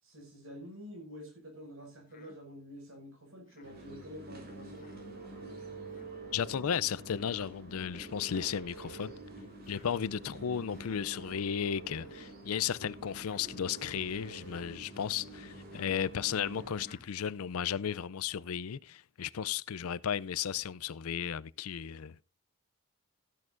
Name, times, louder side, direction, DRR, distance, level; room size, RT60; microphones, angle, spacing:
voice 1, 0.0-4.9, equal, 65° right, 5.9 m, -48 dB
Human voice, 2.1-2.4 3.5-3.8 4.7-5.0 5.9-6.1 7.1-7.4 8.3-8.7 9.6-9.9 10.7-11.0 11.9-12.2 13.2-13.5 14.4-14.7 15.7-16.0 16.8-17.1, left 3 dB, 40° left, 1.7 m, -59 dB
sound 1, 3.6-16.8, right 2 dB, 45° right, 3.8 m, -47 dB
voice 2, 6.3-9.1 9.7-22.2, left 8 dB, 80° left, 0.5 m, -34 dB
14.5 x 10.5 x 2.5 m
head